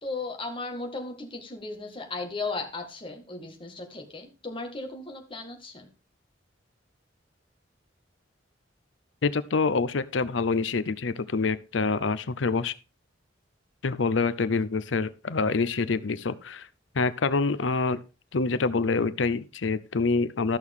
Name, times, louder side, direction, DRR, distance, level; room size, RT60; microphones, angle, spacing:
voice 1, 0.0-5.9, left 3 dB, 30° left, 1.8 m, -36 dB
voice 2, 9.2-12.7 13.8-16.7 16.9-18.0 18.3-20.6, left 4 dB, 85° left, 0.7 m, -26 dB
13.5 x 6.3 x 3.6 m
head